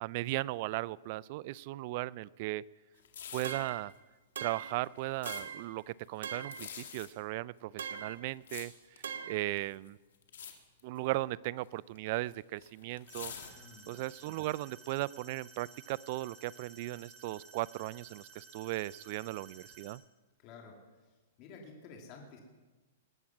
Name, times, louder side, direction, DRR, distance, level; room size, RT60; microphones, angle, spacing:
voice 1, 0.0-2.6 3.3-3.9 4.4-8.7 9.3-10.0 10.8-13.3 13.9-20.0, right 18 dB, 50° right, 23 dB, 0.3 m, -37 dB
sound 1, 3.0-3.7 4.5-5.4 6.4-7.1 7.9-9.1 9.5-9.9 10.2-10.5 10.8-11.1 11.9-14.0 14.5-14.6, left 8 dB, 75° left, 2.0 m, -46 dB
sound 2, 3.4-3.9 4.4-4.8 5.3-5.7 6.2-6.7 7.8-8.2 9.0-9.5, right 7 dB, 80° right, 0.9 m, -41 dB
sound 3, 13.1-19.9, right 4 dB, 30° right, 2.7 m, -55 dB
voice 2, 13.5-13.9 20.4-21.1 21.4-22.4, left 4 dB, 40° left, 0 dB, 2.8 m, -52 dB
20.5 x 8.5 x 6.1 m, 1.2 s
hypercardioid pair, 140°, 0 cm